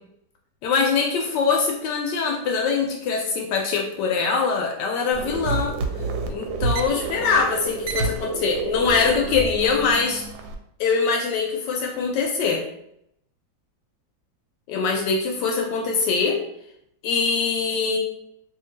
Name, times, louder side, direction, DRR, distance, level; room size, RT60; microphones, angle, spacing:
voice 1, 0.6-5.8 6.3-10.2 10.8-12.6 14.7-16.4 17.0-18.0, left 5 dB, 75° left, 2 dB, 1.1 m, -23 dB
sound 1, 5.1-10.5, right 3 dB, 75° right, 1.2 m, -29 dB
2.9 x 2.6 x 3.8 m, 0.76 s
omnidirectional pair, 2.1 m